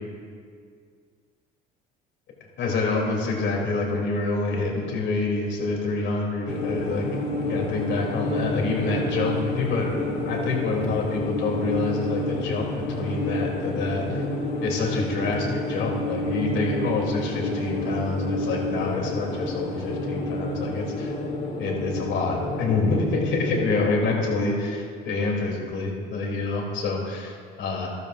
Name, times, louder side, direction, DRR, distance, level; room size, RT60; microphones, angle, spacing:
voice 1, 2.6-7.1 7.3-14.2 14.6-21.1 21.6-27.9, left 3 dB, 65° left, -1 dB, 2.9 m, -27 dB
sound 1, 6.5-24.3, left 1 dB, 40° left, 2.5 m, -29 dB
14.0 x 12.5 x 2.5 m, 2.1 s
supercardioid pair, 75°, 21 cm